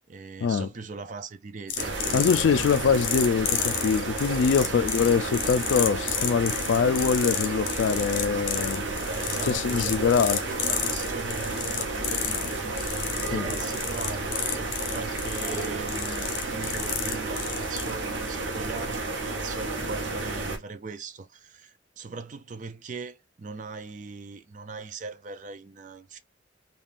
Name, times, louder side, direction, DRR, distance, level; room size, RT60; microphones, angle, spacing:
voice 1, 0.0-2.4 4.6-4.9 9.1-26.2, right 4 dB, 40° right, 0.4 m, -40 dB
sound 1, 1.7-17.9, left 8 dB, 45° left, 0.7 m, -32 dB
sound 2, 1.8-20.6, right 3 dB, 80° right, 0.8 m, -32 dB
voice 2, 2.1-8.8 9.4-10.4 13.3-13.5, left 6 dB, 75° left, 0.3 m, -24 dB
sound 3, 11.9-12.4 13.1-13.9 15.4-15.9, right 2 dB, 25° right, 1.0 m, -40 dB
3.5 x 2.3 x 2.4 m
head